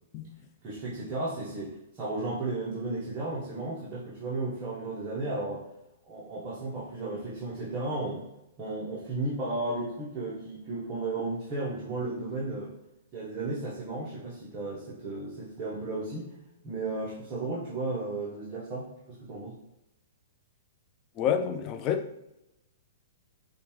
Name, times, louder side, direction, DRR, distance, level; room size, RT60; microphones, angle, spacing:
voice 1, 0.6-5.6 6.0-8.2 8.6-12.7 13.1-16.3 16.6-19.6, right 2 dB, 25° right, -7 dB, 0.9 m, -34 dB
voice 2, 21.2-22.2, left 8 dB, 30° left, 8 dB, 0.4 m, -29 dB
4.8 x 2.2 x 3.1 m, 0.89 s
hypercardioid pair, 140°, 0 cm